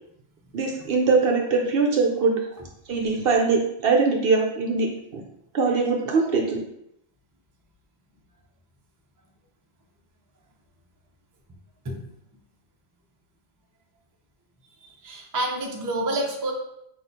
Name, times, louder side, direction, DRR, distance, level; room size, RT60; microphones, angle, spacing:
voice 1, 0.5-2.4 2.9-5.2 5.5-6.6, right 4 dB, 65° right, 1 dB, 0.7 m, -22 dB
voice 2, 14.8-16.5, right 1 dB, 25° right, 0 dB, 0.4 m, -28 dB
6.0 x 2.4 x 2.6 m, 0.77 s
omnidirectional pair, 1.2 m